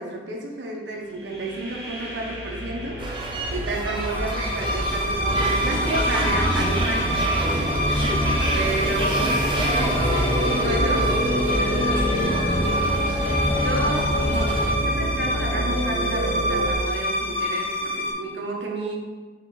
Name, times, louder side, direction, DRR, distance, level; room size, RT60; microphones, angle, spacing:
voice 1, 0.0-7.8 8.5-11.1 11.4-11.6 13.6-19.0, right 2 dB, 80° right, -1 dB, 0.9 m, -31 dB
sound 1, 1.2-16.7, equal, 65° right, 1.3 m, -28 dB
sound 2, 3.0-14.7, right 1 dB, 25° right, 0.4 m, -29 dB
sound 3, 4.0-18.1, equal, 25° left, 1.1 m, -26 dB
4.8 x 3.4 x 3.1 m, 1.3 s
head